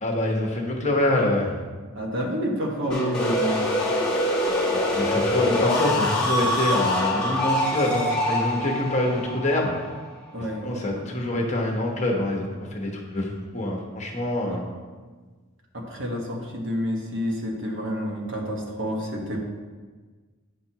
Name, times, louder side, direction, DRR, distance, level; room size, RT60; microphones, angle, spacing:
voice 1, 0.0-1.6 4.7-9.7 10.6-14.6, left 1 dB, 35° left, 0 dB, 1.0 m, -25 dB
voice 2, 1.9-3.6 10.3-11.1 14.5-14.6 15.7-19.4, equal, 60° right, 0 dB, 1.2 m, -29 dB
sound 1, 2.9-10.6, left 1 dB, 5° left, 1.1 m, -25 dB
9.0 x 5.9 x 2.9 m, 1.4 s
head